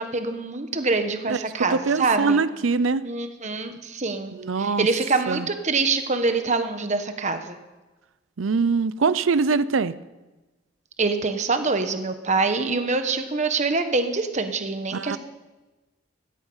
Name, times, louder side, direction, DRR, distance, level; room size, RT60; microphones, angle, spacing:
voice 1, 0.0-2.4 3.0-7.6 11.0-15.2, right 3 dB, 35° right, 8 dB, 1.2 m, -25 dB
voice 2, 1.7-3.0 4.3-4.9 5.3-5.5 8.4-9.9 14.9-15.2, right 4 dB, 85° right, 16 dB, 0.6 m, -23 dB
17.0 x 14.0 x 5.5 m, 1.1 s
head